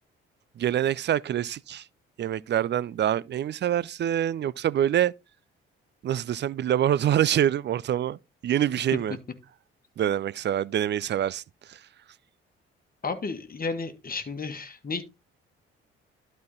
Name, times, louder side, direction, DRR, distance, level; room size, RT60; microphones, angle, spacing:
voice 1, 0.6-1.8 2.2-5.1 6.0-8.2 8.4-9.2 10.0-11.4 11.7-11.8, right 10 dB, 35° right, 0.4 m, -25 dB
voice 2, 13.0-15.0, left 4 dB, 30° left, 1.7 m, -32 dB
12.0 x 4.4 x 3.9 m
figure-of-eight pair, 45°, 30 cm